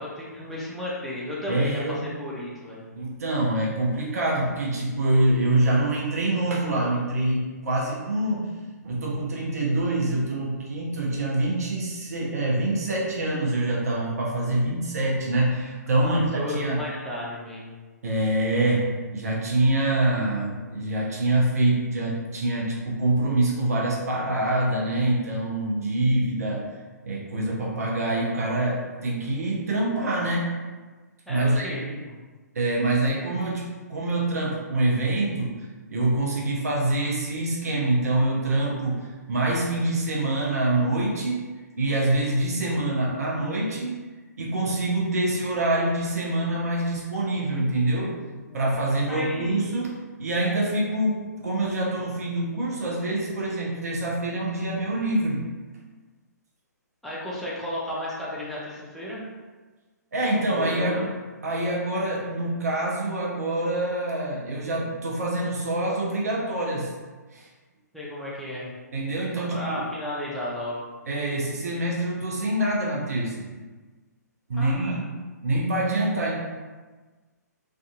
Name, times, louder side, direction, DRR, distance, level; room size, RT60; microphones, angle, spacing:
voice 1, 0.0-2.8 15.9-17.8 31.3-32.1 48.2-48.6 49.1-49.6 57.0-59.2 60.6-61.1 67.9-68.7 69.5-70.8 74.5-75.0, left 1 dB, ahead, -8 dB, 0.4 m, -33 dB
voice 2, 1.5-2.0 3.0-8.5 8.8-16.8 18.0-18.9 19.1-26.6 27.0-30.5 31.3-31.7 32.5-35.5 35.9-41.4 41.8-43.9 44.4-48.1 48.5-49.9 50.2-55.4 60.1-61.0 61.4-66.9 67.3-67.5 68.9-69.8 71.1-73.5 74.5-75.0 75.4-76.4, right 1 dB, 60° right, -3 dB, 0.6 m, -25 dB
2.6 x 2.4 x 2.3 m, 1.3 s
figure-of-eight pair, 130°, 10 cm